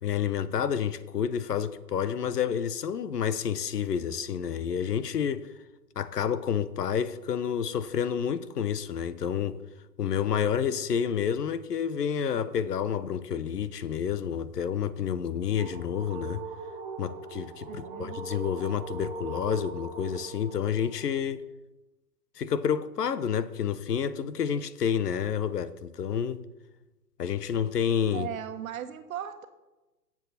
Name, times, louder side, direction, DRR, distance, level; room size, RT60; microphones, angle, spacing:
voice 1, 0.0-5.5 6.0-9.6 10.0-16.4 17.0-21.4 22.4-26.4 27.2-28.3, left 8 dB, 75° left, 0.9 m, -29 dB
sound 1, 15.1-21.2, right 4 dB, 15° right, 2.2 m, -40 dB
voice 2, 17.7-18.2 28.1-29.5, right 10 dB, 55° right, 1.3 m, -37 dB
17.5 x 7.4 x 4.2 m
hypercardioid pair, 120°, 48 cm